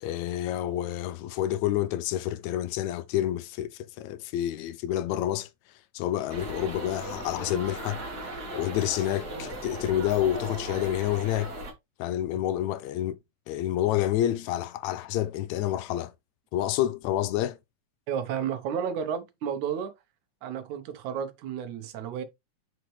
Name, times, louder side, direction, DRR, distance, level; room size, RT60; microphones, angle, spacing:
voice 1, 0.0-5.5 5.9-8.0 8.5-11.5 12.0-13.2 13.5-16.1 16.5-17.6, left 12 dB, 80° left, 1.9 m, -28 dB
sound 1, 6.3-11.7, right 1 dB, 35° right, 2.5 m, -37 dB
voice 2, 18.1-19.9 20.4-22.2, right 8 dB, 85° right, 2.5 m, -32 dB
6.2 x 5.9 x 3.3 m
omnidirectional pair, 3.3 m